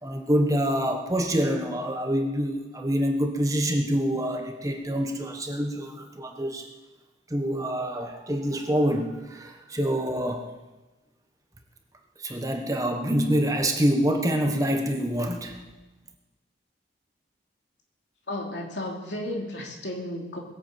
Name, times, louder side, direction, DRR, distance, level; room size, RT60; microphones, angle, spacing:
voice 1, 0.0-6.7 7.3-10.4 12.2-15.6, equal, 20° right, 4 dB, 1.3 m, -26 dB
voice 2, 18.3-20.4, left 1 dB, 70° left, 1 dB, 3.0 m, -33 dB
21.0 x 8.3 x 7.8 m, 1.1 s
head